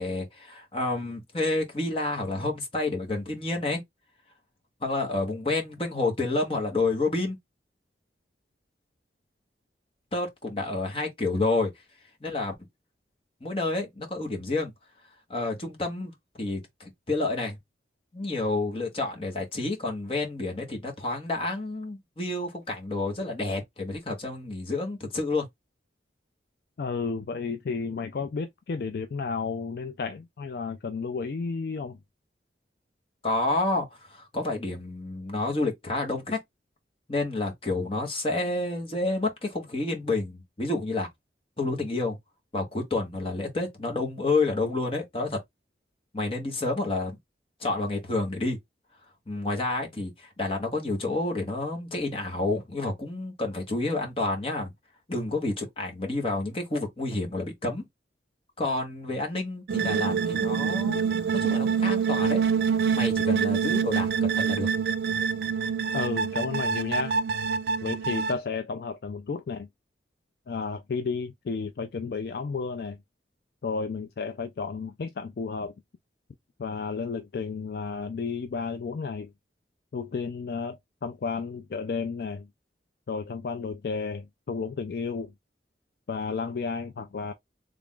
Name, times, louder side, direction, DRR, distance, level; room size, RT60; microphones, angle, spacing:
voice 1, 0.0-3.8 4.8-7.4 10.1-11.7 12.2-12.5 13.4-14.7 15.3-17.6 18.1-25.5 33.2-36.4 37.1-41.1 41.6-42.2 42.5-45.4 46.1-47.2 47.6-48.6 49.3-54.7 55.1-57.8 58.6-61.0 61.3-62.4 63.0-64.7, left 2 dB, 30° left, 1.1 m, -29 dB
voice 2, 26.8-32.0 65.9-67.1 67.8-69.7 70.5-73.0 73.6-75.7 76.6-79.3 79.9-82.5 83.1-85.3 86.1-87.3, left 4 dB, 55° left, 0.4 m, -32 dB
sound 1, 59.7-68.4, right 6 dB, 60° right, 0.3 m, -26 dB
3.4 x 2.4 x 3.6 m
head